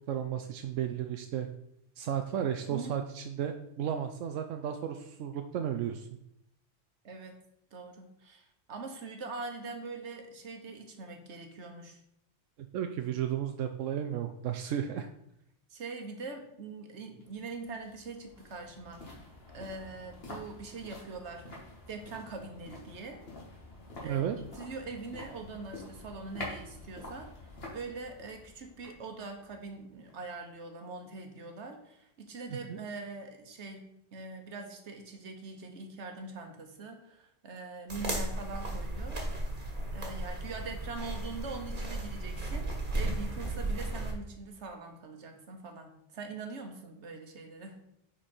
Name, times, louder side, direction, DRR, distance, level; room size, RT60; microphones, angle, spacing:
voice 1, 0.1-1.5 2.0-6.1 12.7-15.1 24.0-24.4 32.7-32.8, right 9 dB, 90° right, 6 dB, 1.0 m, -33 dB
voice 2, 7.0-7.4 7.7-12.0 15.7-19.0 19.5-21.5 21.9-23.2 24.0-27.3 27.7-39.2 39.9-47.8, right 3 dB, 65° right, 5 dB, 1.5 m, -43 dB
sound 1, 17.2-30.4 30.7-30.8, left 2 dB, 55° left, 2.1 m, -48 dB
sound 2, 37.9-44.1, right 1 dB, 40° right, 1.7 m, -35 dB
9.9 x 4.5 x 4.4 m, 0.79 s
omnidirectional pair, 1.3 m